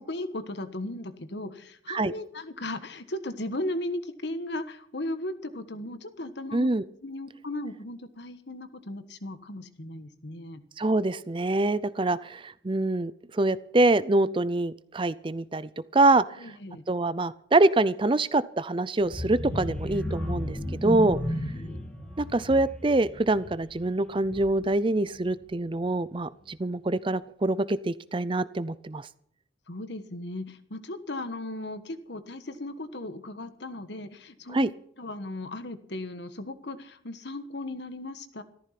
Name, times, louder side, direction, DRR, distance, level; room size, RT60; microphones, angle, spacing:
voice 1, 0.0-6.7 7.0-10.6 16.4-16.8 21.3-21.8 29.7-38.4, left 1 dB, 60° left, 11 dB, 1.3 m, -36 dB
voice 2, 6.5-6.8 10.8-16.5 16.9-21.2 22.2-29.1 34.5-34.7, right 2 dB, 25° right, 17 dB, 0.5 m, -25 dB
sound 1, 19.0-24.8 25.2-25.4 25.7-25.8, equal, 5° left, 2.7 m, -34 dB
14.5 x 13.5 x 5.8 m, 0.64 s
head